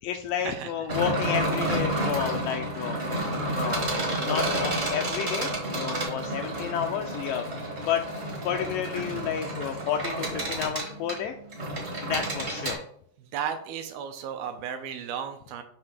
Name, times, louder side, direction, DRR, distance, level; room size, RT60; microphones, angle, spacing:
voice 1, 0.0-3.0 3.5-7.5 7.8-8.0 8.5-11.3 12.0-12.8, left 9 dB, 85° left, 5 dB, 1.9 m, -31 dB
sound 1, 0.9-12.7, right 1 dB, 40° right, 0.8 m, -30 dB
voice 2, 13.2-15.6, right 8 dB, 80° right, 6 dB, 2.5 m, -34 dB
7.7 x 2.9 x 5.9 m, 0.66 s
omnidirectional pair, 4.3 m